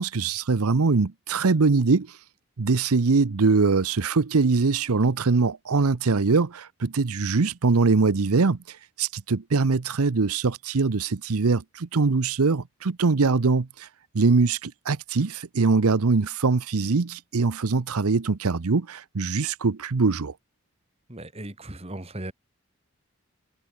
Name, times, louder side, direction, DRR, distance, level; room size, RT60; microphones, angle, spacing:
voice 1, 0.0-2.2 2.6-13.9 14.1-20.3, right 4 dB, 85° right, 0.7 m, -22 dB
voice 2, 21.1-22.3, right 1 dB, 25° right, 1.9 m, -37 dB
head